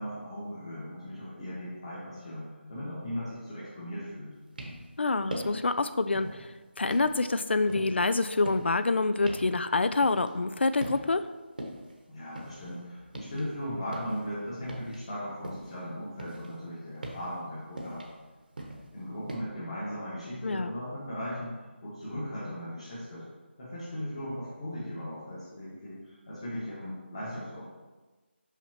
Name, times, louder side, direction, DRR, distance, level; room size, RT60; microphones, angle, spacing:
voice 1, 0.0-4.4 12.1-18.0 18.9-23.2 23.6-27.6, equal, 30° left, -9 dB, 1.4 m, -38 dB
sound 1, 4.4-5.0 5.3-5.7 6.1-6.5 6.9-10.5 10.8-11.3 11.6-13.5 13.8-15.8 16.1-19.4, right 1 dB, 50° right, 1.0 m, -42 dB
voice 2, 5.0-11.2 20.4-20.7, left 3 dB, 65° left, 12 dB, 0.3 m, -27 dB
5.7 x 5.6 x 2.9 m, 1.2 s
figure-of-eight pair, 175°, 6 cm